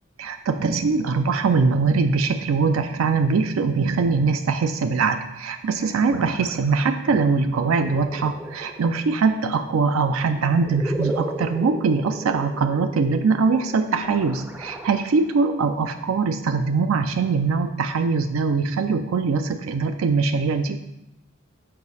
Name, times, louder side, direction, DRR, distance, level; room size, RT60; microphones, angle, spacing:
voice 1, 0.2-20.8, right 4 dB, 85° right, 8 dB, 0.4 m, -22 dB
sound 1, 5.6-15.7, right 1 dB, 10° right, 0.4 m, -37 dB
6.6 x 4.8 x 4.1 m, 0.89 s
head